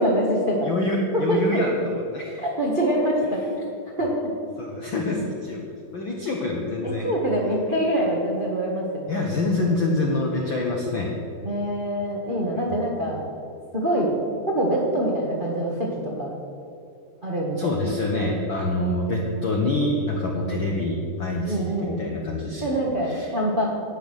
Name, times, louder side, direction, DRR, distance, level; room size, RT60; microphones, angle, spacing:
voice 1, 0.0-0.7 1.1-1.6 2.4-3.6 4.0-4.3 6.8-9.2 11.4-13.2 13.7-14.1 14.4-16.4 17.2-17.8 18.2-18.3 21.4-22.0 22.6-23.6, right 1 dB, 65° right, -3 dB, 0.5 m, -25 dB
voice 2, 0.6-2.4 4.6-5.6 5.9-7.1 9.1-11.1 17.6-22.7 23.0-23.3, left 2 dB, 75° left, 0 dB, 1.1 m, -26 dB
12.0 x 9.0 x 6.4 m, 2.6 s
omnidirectional pair, 3.9 m